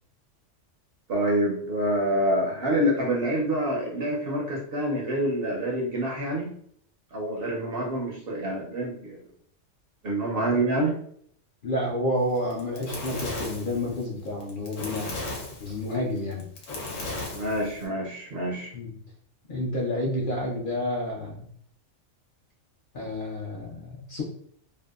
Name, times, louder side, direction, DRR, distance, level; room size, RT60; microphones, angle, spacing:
voice 1, 1.1-6.5 7.1-9.2 10.0-11.0 17.3-18.7, right 1 dB, 60° right, -2 dB, 0.7 m, -27 dB
voice 2, 11.6-15.2 15.6-16.5 18.7-18.9 19.5-21.5 22.9-24.2, left 1 dB, 60° left, -4 dB, 0.6 m, -30 dB
Fire, 12.4-17.9, left 2 dB, 75° left, 1.0 m, -36 dB
2.6 x 2.1 x 2.3 m, 0.65 s
omnidirectional pair, 1.3 m